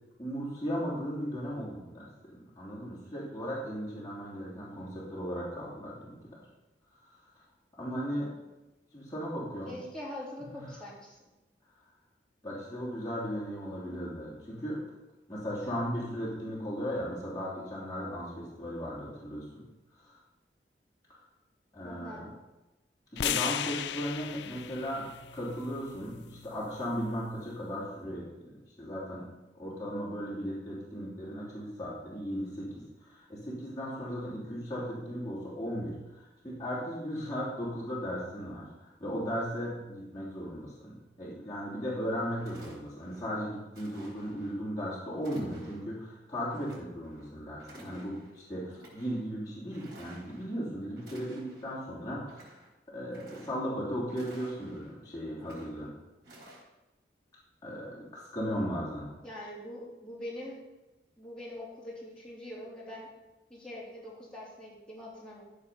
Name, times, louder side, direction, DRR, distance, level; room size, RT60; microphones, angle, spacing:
voice 1, 0.2-6.1 7.0-7.1 7.8-8.3 8.9-9.7 10.5-10.7 12.4-14.8 15.3-19.6 20.0-20.2 21.1-21.2 21.7-22.3 23.1-25.0 25.3-29.3 29.5-52.5 52.9-55.9 57.6-59.1, equal, 20° left, -8 dB, 3.1 m, -36 dB
voice 2, 9.7-11.3 21.8-22.3 59.2-60.6 61.2-63.1 63.5-65.4, left 1 dB, 5° left, -8 dB, 3.1 m, -43 dB
sound 1, 23.2-27.4, left 10 dB, 80° left, 0.4 m, -37 dB
sound 2, 41.9-42.0 42.4-43.2 43.7-44.6 45.2-45.9 46.5-47.3 47.6-48.3 48.7-49.2 49.7-50.5 51.0-51.8 52.2-52.7 53.0-53.8 54.1-54.9 55.4-55.9 56.2-56.6, right 1 dB, 75° right, 4.0 m, -54 dB
14.0 x 4.9 x 5.5 m, 1.0 s
head